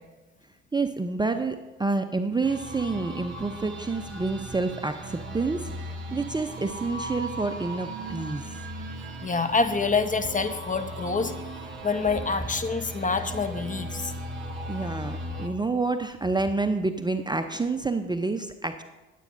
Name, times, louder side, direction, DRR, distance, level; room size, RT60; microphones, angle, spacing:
voice 1, 0.7-8.6 14.7-18.8, right 3 dB, 15° right, 8 dB, 0.7 m, -28 dB
sound 1, 2.4-15.5, right 1 dB, 35° right, 2.5 m, -37 dB
voice 2, 9.2-11.3 11.8-14.1, left 4 dB, 25° left, 9 dB, 1.0 m, -26 dB
22.5 x 8.3 x 2.6 m, 1.2 s
hypercardioid pair, 50°, 32 cm